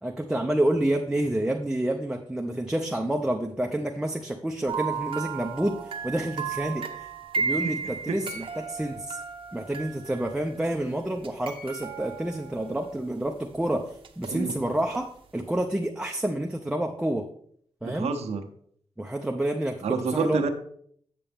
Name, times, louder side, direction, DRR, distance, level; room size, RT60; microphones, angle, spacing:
voice 1, 0.0-6.8 7.4-9.2 9.5-13.9 14.2-15.1 15.3-17.2 17.8-18.1 19.0-19.8 20.1-20.4, right 1 dB, 5° right, 2 dB, 0.6 m, -28 dB
sound 1, 4.7-10.6 11.2-13.3 14.0-15.0 15.4-15.5, right 6 dB, 60° right, 0.8 m, -34 dB
voice 2, 17.8-18.4 19.8-20.5, right 5 dB, 90° right, 5 dB, 0.9 m, -28 dB
8.6 x 6.7 x 3.5 m, 0.63 s
wide cardioid pair, 120°, 11 cm